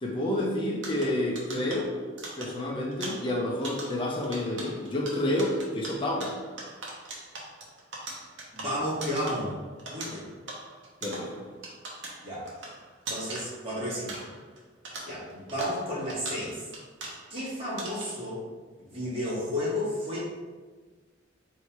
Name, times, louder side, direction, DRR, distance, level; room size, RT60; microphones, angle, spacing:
voice 1, 0.0-1.9 2.4-6.4 11.0-11.4, left 1 dB, 25° left, -2 dB, 0.6 m, -29 dB
sound 1, 0.8-14.6 14.8-17.5 17.8-18.3, right 2 dB, 75° right, 0.9 m, -41 dB
voice 2, 8.5-9.5 9.9-10.3 12.2-12.5 13.1-14.3 15.0-16.6 17.3-18.4 18.8-20.3, equal, 30° right, -8 dB, 1.4 m, -32 dB
3.2 x 2.7 x 4.5 m, 1.4 s
head